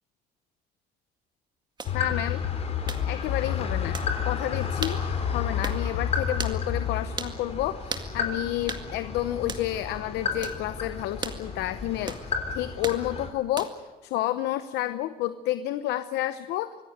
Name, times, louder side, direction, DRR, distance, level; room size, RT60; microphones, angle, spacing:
sound 1, 1.8-13.3, left 5 dB, 40° left, 3.7 m, -34 dB
sound 2, 1.8-2.0 2.9-3.1 3.9-4.1 4.8-5.0 5.6-5.8 6.4-6.6 7.2-7.4 7.9-8.1 8.7-8.9 9.5-9.7 10.4-10.6 11.2-11.4 12.1-12.3 12.8-13.0 13.6-13.9, right 4 dB, 25° right, 2.0 m, -35 dB
voice 1, 1.9-2.4 3.1-4.0 4.2-16.8, left 14 dB, 90° left, 12 dB, 0.8 m, -30 dB
sound 3, 1.9-7.1, left 9 dB, 70° left, 1.2 m, -30 dB
25.0 x 16.0 x 9.1 m, 1.2 s
cardioid pair, 110°, 17 cm